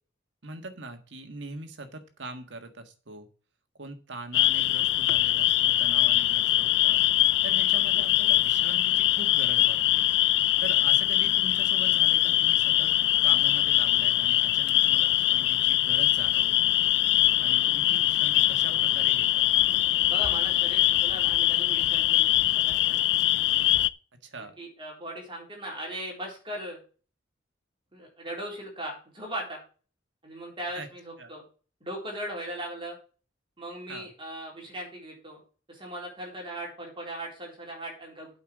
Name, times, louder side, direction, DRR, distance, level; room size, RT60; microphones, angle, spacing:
voice 1, 0.4-3.3 3.8-10.1 10.6-12.9 13.2-16.7 17.4-19.4 24.2-24.5 30.7-30.9 31.2-31.3 33.9-34.1, right 2 dB, 65° right, 7 dB, 1.7 m, -42 dB
sound 1, 4.3-23.9, left 15 dB, 60° left, 0.4 m, -23 dB
voice 2, 20.1-23.1 24.6-26.8 27.9-29.6 30.2-31.4 31.8-33.0 33.6-35.4 35.7-38.4, right 1 dB, 25° right, -1 dB, 3.8 m, -38 dB
8.5 x 5.7 x 7.3 m, 0.38 s
head